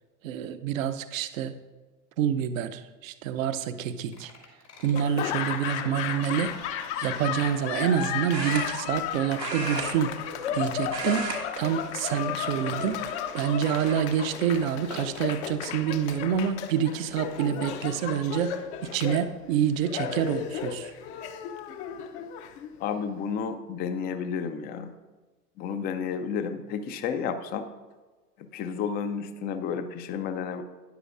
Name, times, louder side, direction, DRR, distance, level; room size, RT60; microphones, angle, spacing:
voice 1, 0.2-1.5 2.2-4.3 4.8-6.5 7.0-10.2 10.5-11.3 11.6-13.0 13.3-18.6 18.9-20.9, right 9 dB, 55° right, 11 dB, 0.8 m, -27 dB
sound 1, 3.4-3.5 3.7-3.9 4.1-5.0 5.5-6.6 7.0-7.1 7.4-8.6 8.9-9.3 9.8-11.3 11.6-12.3 12.8-13.8 14.1-14.6 15.4-15.5 15.9-16.7 17.0-17.1 17.3-17.5 18.3-19.2 20.1-20.2 20.5-20.6, left 5 dB, 75° left, 2.7 m, -54 dB
Laughter / Applause, 4.9-23.0, left 9 dB, 45° left, 0.8 m, -34 dB
sound 2, 6.4-6.7 8.3-9.1 9.4-10.6 10.8-11.4 11.7-12.0 12.7-13.3 13.9-14.0 15.4-15.5 15.8-16.2, right 3 dB, 90° right, 1.6 m, -34 dB
voice 2, 22.8-24.9 25.6-27.7 28.4-30.6, left 6 dB, 20° left, 9 dB, 0.5 m, -31 dB
13.0 x 9.9 x 2.5 m, 1.3 s
figure-of-eight pair, 80°, 48 cm